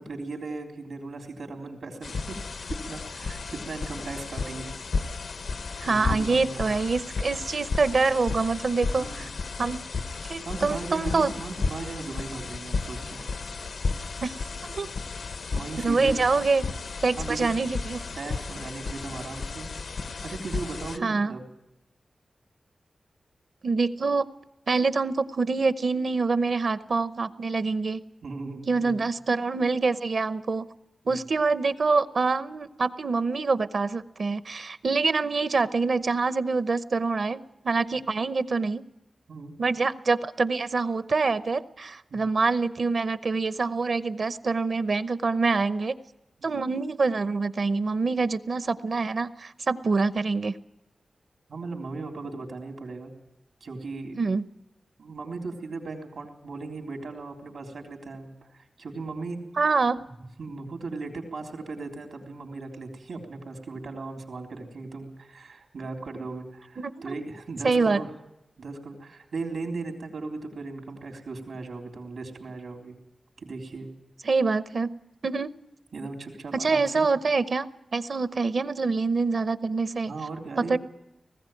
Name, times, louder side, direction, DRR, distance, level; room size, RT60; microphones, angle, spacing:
voice 1, 0.0-2.4 2.7-4.7 5.9-6.8 9.0-9.3 10.5-13.3 15.5-16.4 17.2-17.6 18.2-19.7 20.2-21.4 28.2-29.0 31.1-31.3 39.3-39.5 42.1-42.3 46.5-46.6 51.5-53.1 53.6-54.2 55.0-59.4 60.0-60.1 60.4-68.1 68.6-73.0 73.4-73.9 75.9-77.1 80.1-80.8, right 3 dB, 85° right, 2 dB, 3.7 m, -37 dB
sound 1, 2.0-21.0, left 4 dB, 90° left, 1.0 m, -33 dB
voice 2, 5.8-9.3 9.6-9.8 10.3-11.3 14.2-14.3 14.7-14.9 15.8-16.6 17.0-18.1 21.0-21.4 23.6-24.3 24.7-28.0 28.7-30.7 31.1-38.8 39.6-45.9 46.4-50.5 54.2-54.4 59.6-60.0 66.8-67.1 67.6-68.0 74.2-75.0 75.2-75.5 76.5-77.7 77.9-80.1 80.6-80.8, right 4 dB, 55° right, 14 dB, 0.8 m, -25 dB
19.0 x 15.5 x 9.2 m, 0.91 s
wide cardioid pair, 140°, 0 cm